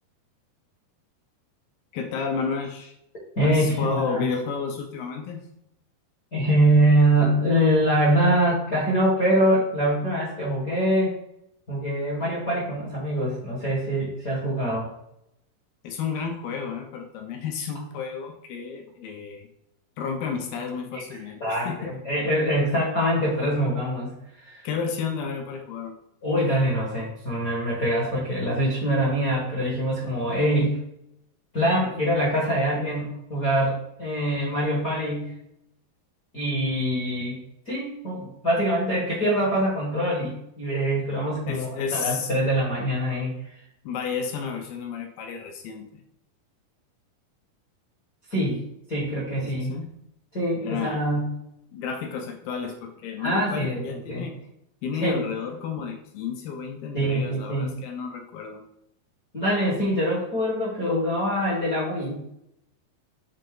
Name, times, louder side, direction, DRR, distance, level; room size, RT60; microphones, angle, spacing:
voice 1, 1.9-2.9 3.4-5.5 15.8-19.5 20.0-21.9 24.6-25.9 41.5-42.5 43.8-45.9 49.4-50.0 50.6-51.0 51.7-54.4 54.8-58.6, left 6 dB, 75° left, 3 dB, 2.3 m, -32 dB
voice 2, 3.3-4.2 6.3-11.1 11.7-14.9 20.9-21.0 21.4-24.7 26.2-30.8 31.5-35.3 36.3-37.4 37.6-43.4 48.3-48.6 48.9-49.7 50.3-51.4 53.2-54.2 55.0-55.2 56.9-57.8 59.3-62.2, right 1 dB, 45° left, -6 dB, 1.1 m, -24 dB
6.5 x 4.0 x 3.8 m, 0.81 s
omnidirectional pair, 4.6 m